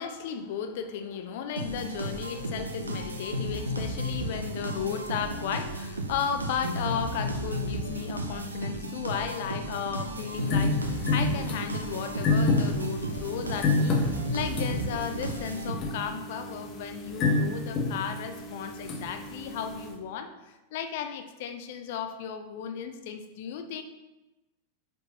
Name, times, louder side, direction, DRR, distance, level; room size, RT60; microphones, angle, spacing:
voice 1, 0.0-23.8, left 7 dB, 50° left, 7 dB, 0.7 m, -35 dB
sound 1, 1.6-16.1, equal, 80° right, 0.8 m, -34 dB
sound 2, 10.3-19.9, left 3 dB, 35° left, 1.0 m, -29 dB
6.2 x 5.4 x 4.1 m, 1.0 s
figure-of-eight pair, 90°, 0 cm